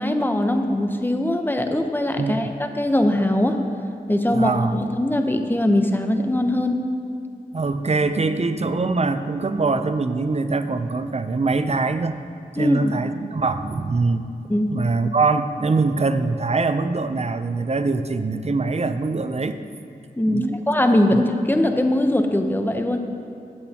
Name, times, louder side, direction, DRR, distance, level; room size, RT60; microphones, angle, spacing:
voice 1, 0.0-3.6 4.1-6.8 12.6-12.9 14.5-14.7 20.2-23.0, left 1 dB, 10° left, 5 dB, 0.9 m, -21 dB
voice 2, 2.2-2.5 4.3-4.8 7.5-12.2 12.5-14.3 14.7-19.6 20.3-20.6 21.1-21.2, right 3 dB, 40° right, 10 dB, 0.6 m, -23 dB
15.5 x 8.1 x 2.9 m, 2.8 s
wide cardioid pair, 55°, 16 cm